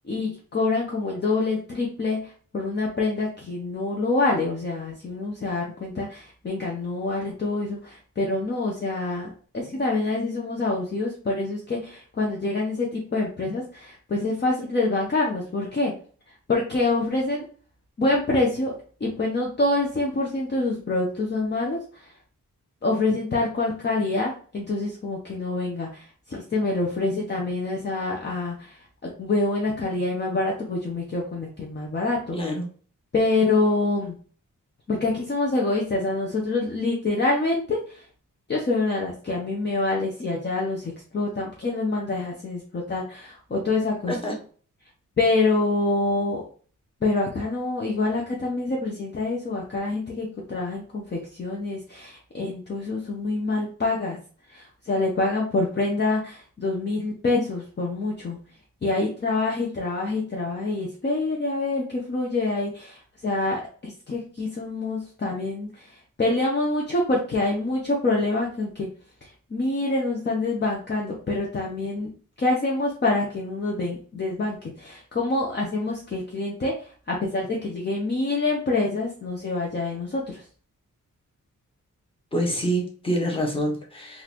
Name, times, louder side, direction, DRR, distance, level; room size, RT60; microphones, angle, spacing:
voice 1, 0.0-15.9 16.3-17.5 18.0-22.1 22.8-32.4 33.1-34.1 34.9-38.1 38.5-44.1 45.2-46.4 47.0-54.2 54.5-58.4 58.8-68.9 69.2-72.1 72.4-80.4, left 2 dB, 35° left, -2 dB, 0.7 m, -26 dB
voice 2, 32.3-32.7 44.1-44.3 82.3-84.2, equal, 15° left, -1 dB, 1.1 m, -26 dB
3.9 x 2.5 x 2.9 m, 0.43 s
wide cardioid pair, 135°, 32 cm